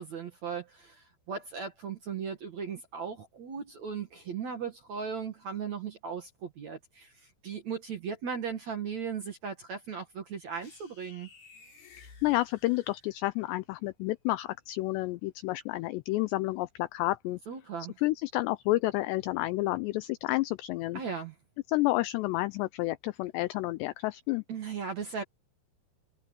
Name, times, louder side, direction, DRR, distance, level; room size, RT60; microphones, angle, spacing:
voice 1, 0.0-11.3 17.5-17.9 20.9-21.3 24.5-25.2, right 6 dB, 60° right, 2.0 m, -37 dB
sound 1, 10.6-13.5, left 5 dB, 55° left, 7.3 m, -55 dB
voice 2, 12.0-17.4 18.0-21.0 21.7-24.4, left 19 dB, 85° left, 2.5 m, -30 dB
omnidirectional pair, 5.5 m